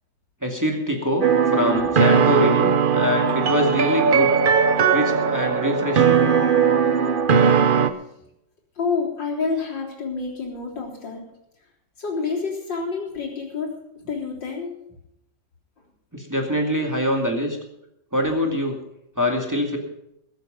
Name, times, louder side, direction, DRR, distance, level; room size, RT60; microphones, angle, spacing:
voice 1, 0.4-1.3 1.5-4.3 4.9-6.3 16.1-17.6 18.1-18.8 19.2-19.8, left 1 dB, 10° right, 1 dB, 2.2 m, -24 dB
sound 1, 1.2-7.9, right 6 dB, 55° right, 0.5 m, -19 dB
voice 2, 6.5-7.0 7.2-7.5 8.8-11.2 12.0-13.8 14.1-14.8, left 4 dB, 80° left, -2 dB, 4.4 m, -28 dB
21.5 x 8.3 x 5.2 m, 0.83 s
omnidirectional pair, 1.9 m